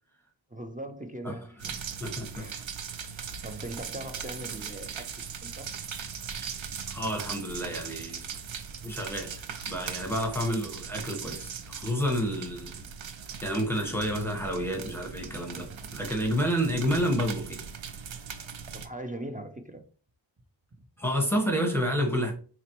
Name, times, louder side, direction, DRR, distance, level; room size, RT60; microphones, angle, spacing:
voice 1, 0.5-1.7 2.3-2.6 3.0-5.7 18.7-19.9, right 1 dB, 20° right, 0.5 m, -40 dB
sound 1, 1.6-18.9, right 6 dB, 80° right, 0.6 m, -39 dB
voice 2, 2.0-2.4 6.9-8.2 8.8-12.8 13.4-17.6 21.0-22.3, equal, 5° left, 1.1 m, -29 dB
4.1 x 3.0 x 2.9 m
wide cardioid pair, 50°, 46 cm